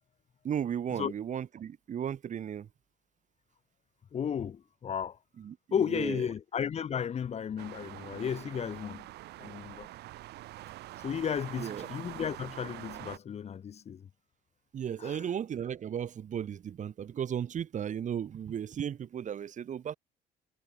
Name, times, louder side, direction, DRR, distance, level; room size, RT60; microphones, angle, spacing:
voice 1, 0.4-2.7 5.4-5.6 5.9-6.2 11.6-11.9 14.7-20.0, right 9 dB, 45° right, 2.5 m, -35 dB
voice 2, 4.1-5.2 5.7-9.0 9.4-9.9 11.0-14.1 15.0-15.3, left 8 dB, 40° left, 1.1 m, -34 dB
sound 1, 7.6-13.2, right 16 dB, 75° right, 2.2 m, -45 dB
cardioid pair, 110°, 17 cm